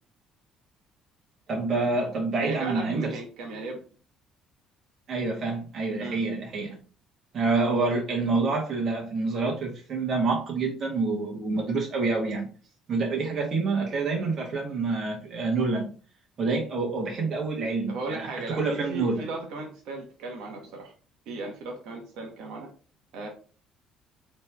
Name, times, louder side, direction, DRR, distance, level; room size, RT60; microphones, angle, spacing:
voice 1, 1.5-3.2 5.1-6.8 7.3-12.5 12.9-15.9 16.4-18.3 18.6-19.2, right 3 dB, 50° right, 1.5 m, -27 dB
voice 2, 2.4-3.8 6.0-6.2 17.9-20.9 21.3-22.7 23.1-23.3, right 3 dB, 75° right, 1.1 m, -36 dB
4.1 x 3.3 x 3.5 m
supercardioid pair, 75°, 0 cm